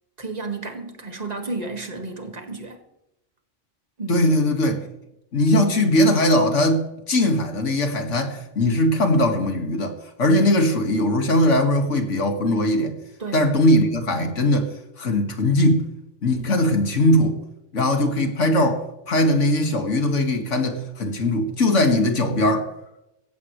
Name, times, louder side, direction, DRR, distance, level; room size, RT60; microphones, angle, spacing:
voice 1, 0.2-2.8 4.0-4.2 13.2-13.4, right 3 dB, 35° right, 1.9 m, -32 dB
voice 2, 4.1-4.9 5.3-9.9 10.2-12.9 13.3-15.9 16.2-17.4 17.7-22.7, left 1 dB, 75° left, 2.2 m, -20 dB
16.5 x 14.5 x 3.2 m
omnidirectional pair, 1.3 m